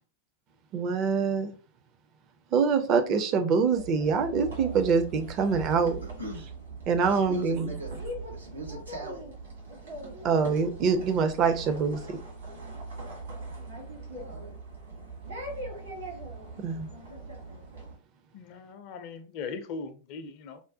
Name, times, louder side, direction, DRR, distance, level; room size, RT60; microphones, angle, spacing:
voice 1, 0.7-1.6 2.5-6.0 6.9-7.7 10.2-12.2 16.6-16.9, right 5 dB, 35° right, 0.5 m, -25 dB
sound 1, 3.6-18.0, right 3 dB, 70° right, 1.6 m, -41 dB
voice 2, 6.0-6.5 7.0-7.9 8.3-9.2 14.1-14.5, equal, 85° right, 1.0 m, -40 dB
voice 3, 18.3-20.6, left 4 dB, 45° left, 0.5 m, -39 dB
4.9 x 2.1 x 2.6 m
figure-of-eight pair, 90°, 0 cm